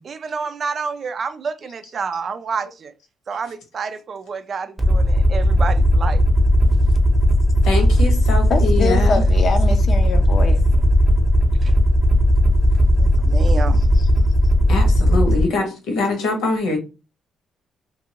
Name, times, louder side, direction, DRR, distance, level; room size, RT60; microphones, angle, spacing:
voice 1, 0.0-2.9 3.3-6.2 11.6-11.8 13.0-13.9, right 5 dB, 50° right, 0.4 m, -29 dB
Aircraft, 4.8-15.4, equal, 15° right, 0.8 m, -16 dB
voice 2, 7.6-9.2 14.7-16.8, left 3 dB, 85° left, 1.1 m, -23 dB
voice 3, 8.5-10.6, left 4 dB, 55° left, 0.5 m, -24 dB
2.6 x 2.5 x 2.9 m
cardioid pair, 90°, 0 cm